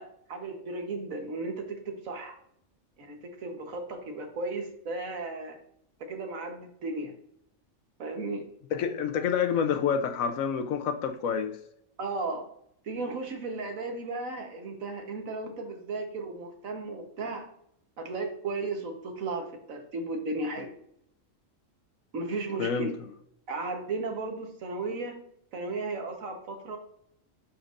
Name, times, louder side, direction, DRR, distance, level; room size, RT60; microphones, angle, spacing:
voice 1, 0.0-2.4 3.0-5.6 6.1-7.1 8.0-8.4 12.0-12.5 12.8-17.5 18.0-20.7 22.1-22.9 23.5-25.2 25.5-26.8, right 3 dB, 80° right, 1.6 m, -35 dB
voice 2, 8.7-11.6 22.6-22.9, left 7 dB, 85° left, 1.1 m, -28 dB
11.0 x 4.5 x 2.5 m
omnidirectional pair, 1.4 m